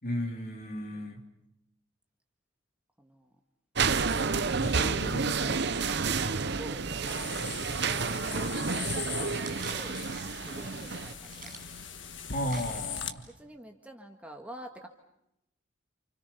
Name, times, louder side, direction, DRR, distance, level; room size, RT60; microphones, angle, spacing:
voice 1, 0.0-1.2 4.6-5.7 7.4-7.6 12.3-13.3, equal, 45° left, 2 dB, 3.7 m, -35 dB
voice 2, 3.0-3.4 6.1-7.3 8.3-10.0 10.4-11.6 13.3-14.9, right 1 dB, 5° right, 2 dB, 1.8 m, -48 dB
sound 1, 3.8-11.1, right 5 dB, 55° right, 0.9 m, -30 dB
sound 2, 7.1-13.1, left 7 dB, 65° left, 1.6 m, -41 dB
sound 3, 9.4-13.4, right 4 dB, 40° right, 6.8 m, -50 dB
29.0 x 29.0 x 5.7 m, 0.83 s
head